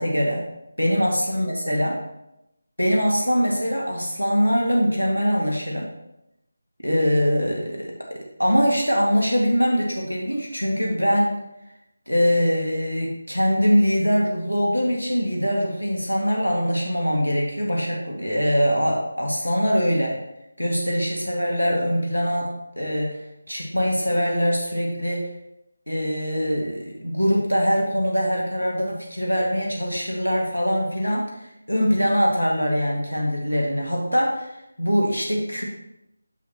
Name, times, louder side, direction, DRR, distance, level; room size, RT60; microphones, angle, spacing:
voice 1, 0.0-0.5 0.8-2.0 2.8-5.9 6.8-11.3 12.1-20.2 20.6-23.2 23.5-25.3 25.9-34.5 34.8-35.6, equal, 85° left, -2 dB, 1.8 m, -23 dB
9.2 x 6.7 x 2.9 m, 0.86 s
figure-of-eight pair, 160°, 0 cm